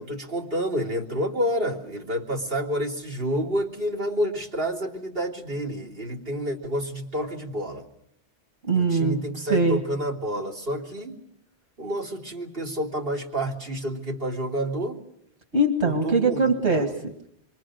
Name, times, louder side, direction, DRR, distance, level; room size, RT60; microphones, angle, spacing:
voice 1, 0.0-7.8 8.7-11.1 11.8-15.0 15.8-16.4 16.7-16.9, equal, 55° right, -3 dB, 3.3 m, -29 dB
voice 2, 8.7-9.8 15.5-17.3, right 2 dB, 85° right, 3 dB, 2.3 m, -23 dB
27.5 x 23.5 x 6.4 m, 0.76 s
omnidirectional pair, 1.1 m